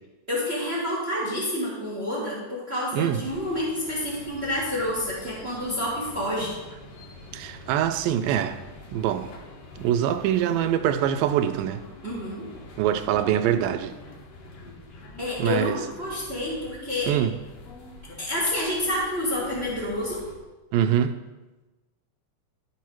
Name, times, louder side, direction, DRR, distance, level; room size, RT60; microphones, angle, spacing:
voice 1, 0.3-6.5 12.0-12.4 15.2-17.1 18.2-20.2, left 1 dB, 25° right, 1.6 m, -28 dB
sound 1, 3.2-20.4, left 2 dB, 60° left, 2.0 m, -45 dB
voice 2, 7.3-8.6 8.9-9.3 9.8-11.8 12.8-13.9 15.4-15.8 17.1-17.3 20.7-21.2, right 10 dB, 85° right, 2.2 m, -24 dB
12.5 x 4.8 x 4.6 m
omnidirectional pair, 3.8 m